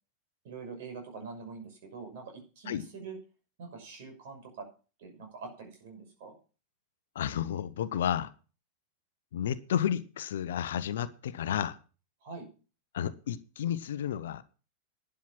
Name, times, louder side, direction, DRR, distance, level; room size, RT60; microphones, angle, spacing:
voice 1, 0.4-3.2 3.6-4.6 5.0-6.4 12.2-12.5, right 4 dB, 55° right, 5 dB, 6.3 m, -44 dB
voice 2, 7.1-8.3 9.3-11.8 12.9-14.4, left 9 dB, 60° left, 14 dB, 0.9 m, -31 dB
11.5 x 10.0 x 5.9 m, 0.36 s
figure-of-eight pair, 90°, 0 cm